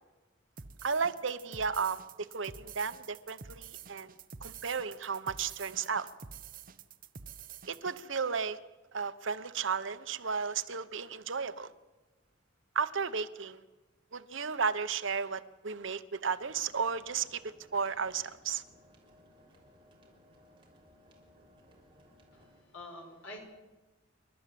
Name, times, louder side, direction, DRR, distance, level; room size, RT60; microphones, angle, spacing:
sound 1, 0.6-8.0, right 6 dB, 45° right, 0.9 m, -48 dB
voice 1, 0.8-2.0 2.3-4.1 4.4-6.1 7.7-8.6 8.9-11.7 12.7-13.6 14.1-18.6, right 5 dB, 70° right, 12 dB, 0.9 m, -34 dB
sound 2, 16.4-22.6, equal, 25° right, 3.8 m, -61 dB
voice 2, 22.3-23.4, left 1 dB, 80° left, 2 dB, 5.5 m, -47 dB
28.5 x 12.5 x 7.7 m, 1.2 s
head